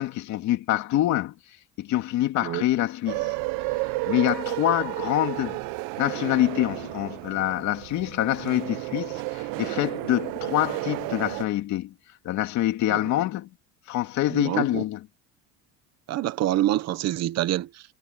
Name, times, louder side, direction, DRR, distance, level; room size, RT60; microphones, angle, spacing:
voice 1, 0.0-1.3 1.8-3.3 4.1-5.6 6.0-11.9 12.2-13.5 13.9-15.1, left 14 dB, 55° left, 2.5 m, -26 dB
sound 1, 3.1-11.4, right 21 dB, 65° right, 0.8 m, -32 dB
voice 2, 14.3-14.8 16.1-17.8, right 14 dB, 45° right, 1.1 m, -26 dB
cardioid pair, 160°, 35 cm